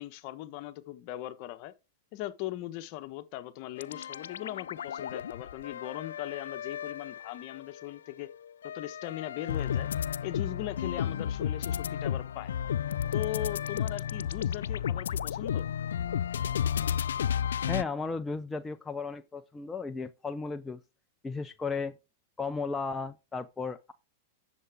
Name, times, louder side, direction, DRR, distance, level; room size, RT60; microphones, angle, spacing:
voice 1, 0.0-1.7 2.1-8.3 8.6-9.9 10.2-12.5 13.1-15.7, left 15 dB, 50° left, 1.1 m, -39 dB
sound 1, 3.8-7.9 8.3-17.8, left 9 dB, 90° left, 0.4 m, -33 dB
voice 2, 17.7-20.8 21.2-22.0 22.4-23.9, left 4 dB, 10° left, 0.6 m, -35 dB
11.0 x 7.0 x 3.6 m
hypercardioid pair, 130°, 0 cm